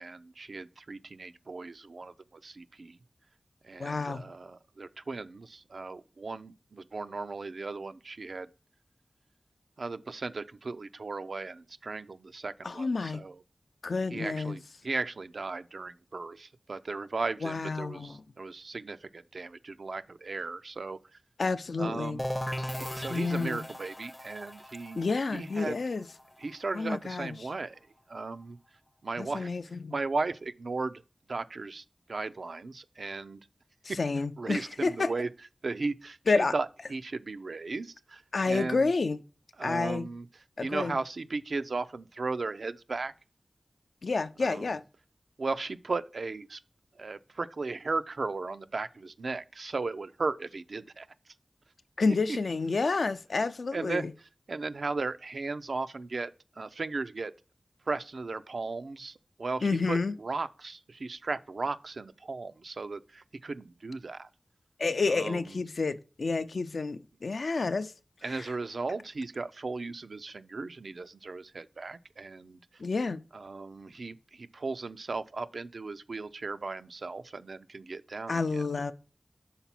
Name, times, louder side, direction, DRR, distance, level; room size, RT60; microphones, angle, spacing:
voice 1, 0.0-3.0 3.6-8.5 9.8-13.4 14.1-21.0 21.8-22.2 22.7-25.1 25.3-25.8 26.4-27.8 28.1-28.6 29.0-29.5 29.9-31.0 31.3-33.5 33.9-34.0 34.4-35.3 35.6-38.9 39.6-40.3 40.6-43.1 44.4-44.7 45.4-46.6 47.0-51.1 52.3-52.4 53.7-54.1 54.5-57.3 57.9-64.3 65.1-65.5 68.2-72.8 73.3-78.6, right 3 dB, 80° right, 0.4 m, -36 dB
voice 2, 3.8-4.3 12.6-13.2 13.8-14.6 17.4-18.2 21.4-22.2 23.1-23.6 24.9-26.1 26.7-27.3 29.2-30.0 34.0-35.1 36.3-36.5 38.3-39.2 39.6-40.1 40.6-41.0 44.0-44.8 52.0-54.1 59.6-60.1 64.8-67.9 68.2-68.5 72.8-73.2 78.3-78.9, left 4 dB, 85° left, 0.4 m, -29 dB
sound 1, 22.2-27.8, equal, 15° left, 0.5 m, -39 dB
5.7 x 4.0 x 5.8 m
wide cardioid pair, 50°, 0 cm